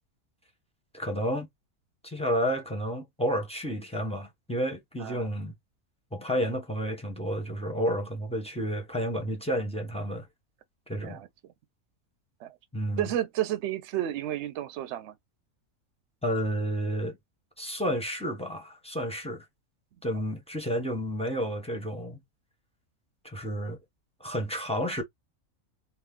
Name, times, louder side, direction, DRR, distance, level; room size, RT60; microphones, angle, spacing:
voice 1, 0.9-1.5 2.0-5.5 6.1-10.3 10.9-11.2 12.7-13.1 16.2-17.2 17.6-19.4 20.0-22.2 23.2-23.8 24.2-25.0, equal, 10° left, 0.4 m, -31 dB
voice 2, 13.0-15.1, right 12 dB, 60° right, 0.8 m, -31 dB
2.6 x 2.3 x 3.5 m
omnidirectional pair, 1.5 m